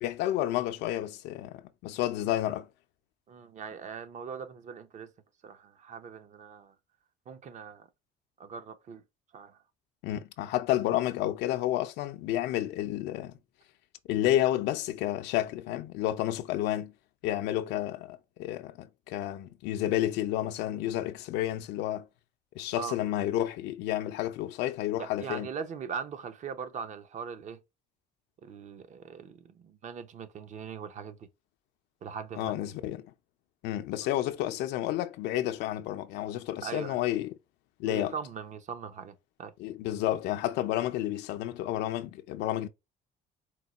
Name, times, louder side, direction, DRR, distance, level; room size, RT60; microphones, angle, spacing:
voice 1, 0.0-2.7 10.0-13.3 14.1-16.9 17.2-22.1 22.6-25.5 32.4-33.1 33.6-37.3 37.8-38.1 39.6-42.7, left 13 dB, 90° left, 0.5 m, -30 dB
voice 2, 3.3-5.1 5.4-6.7 7.3-7.9 8.4-9.0 9.3-9.6 22.8-22.9 25.0-27.6 28.4-31.3 32.0-32.5 36.6-37.0 37.8-39.5, right 6 dB, 45° right, 0.7 m, -40 dB
4.5 x 2.3 x 4.0 m
cardioid pair, 110°, 17 cm